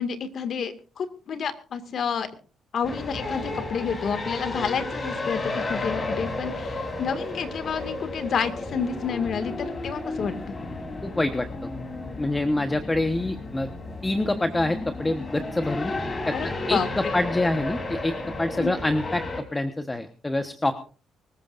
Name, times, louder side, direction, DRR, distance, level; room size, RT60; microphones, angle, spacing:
voice 1, 0.0-2.3 2.7-10.6 16.3-16.9 18.6-18.7, left 6 dB, 60° left, 9 dB, 2.1 m, -29 dB
sound 1, 2.8-19.4, left 2 dB, 35° left, 3.7 m, -33 dB
voice 2, 11.0-11.5 12.2-13.7 14.0-15.9 16.3-18.1 18.4-20.8, left 2 dB, 15° left, 8 dB, 1.2 m, -26 dB
24.5 x 14.5 x 2.6 m, 0.37 s
cardioid pair, 90°, 0 cm